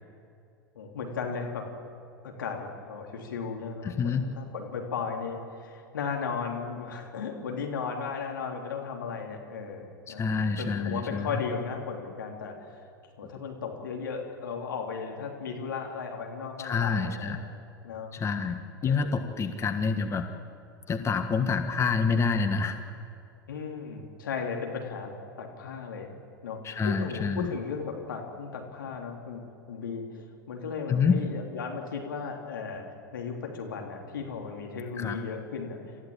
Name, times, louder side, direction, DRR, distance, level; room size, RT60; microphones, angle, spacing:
voice 1, 0.8-1.7 2.2-10.2 10.6-12.8 13.2-17.4 17.8-18.1 18.8-19.3 23.5-25.1 25.4-26.1 26.4-29.4 29.7-30.0 30.5-32.8 33.1-36.0, left 5 dB, 75° left, 1 dB, 3.5 m, -36 dB
voice 2, 3.8-4.2 10.1-11.4 16.6-17.5 18.1-20.3 20.9-22.8 26.6-27.5 30.9-31.2 35.0-35.2, left 5 dB, 25° left, 7 dB, 1.5 m, -27 dB
27.5 x 14.5 x 8.9 m, 2.5 s
figure-of-eight pair, 85°, 11 cm